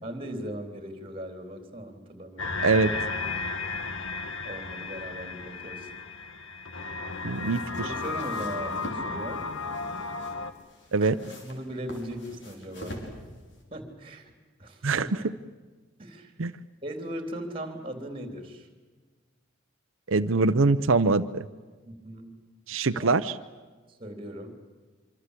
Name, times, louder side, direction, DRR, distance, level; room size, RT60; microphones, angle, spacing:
voice 1, 0.0-2.5 4.4-5.9 7.8-9.4 11.0-13.0 13.7-14.3 14.6-15.1 16.0-16.3 16.8-18.7 21.8-22.3 23.0-23.2 24.0-24.5, equal, 25° right, 6 dB, 3.5 m, -38 dB
sound 1, 2.4-10.5, left 3 dB, 90° left, 1.7 m, -34 dB
sound 2, 7.1-13.6, equal, 60° left, 5.4 m, -45 dB
voice 2, 7.2-7.6 10.9-11.2 14.8-15.1 16.4-16.5 20.1-21.5 22.7-23.4, right 3 dB, 85° right, 9 dB, 0.7 m, -23 dB
26.0 x 25.5 x 8.3 m, 1.4 s
head